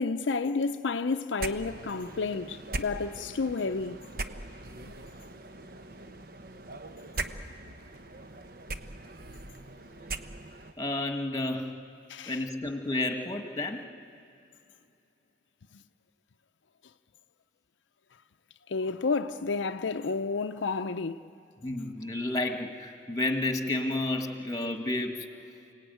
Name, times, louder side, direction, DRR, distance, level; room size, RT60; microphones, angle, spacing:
voice 1, 0.0-4.0 4.9-5.0 12.1-12.4 18.7-21.2, left 4 dB, 80° left, 0.6 m, -30 dB
sound 1, 1.4-10.7, right 2 dB, 50° right, 0.9 m, -40 dB
voice 2, 10.8-11.7 12.3-13.8 21.6-25.3, left 2 dB, 20° left, 1.6 m, -31 dB
29.5 x 18.0 x 9.3 m
head